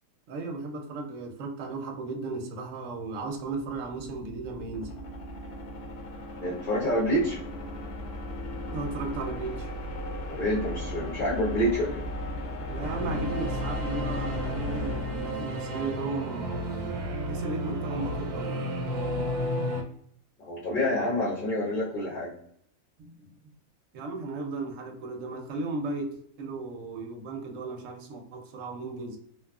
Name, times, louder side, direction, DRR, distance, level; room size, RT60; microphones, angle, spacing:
voice 1, 0.3-4.9 8.7-9.7 12.7-16.9 17.3-18.6 23.0-23.3 23.9-29.2, right 3 dB, 70° right, 3 dB, 0.8 m, -35 dB
sound 1, 3.4-16.3, equal, 85° left, 1.1 m, -37 dB
voice 2, 6.4-7.4 10.3-12.0 20.4-22.3, equal, 50° left, -6 dB, 0.7 m, -27 dB
Singing / Musical instrument, 12.8-19.8, equal, 90° right, 1.1 m, -32 dB
2.9 x 2.3 x 2.2 m, 0.68 s
omnidirectional pair, 1.5 m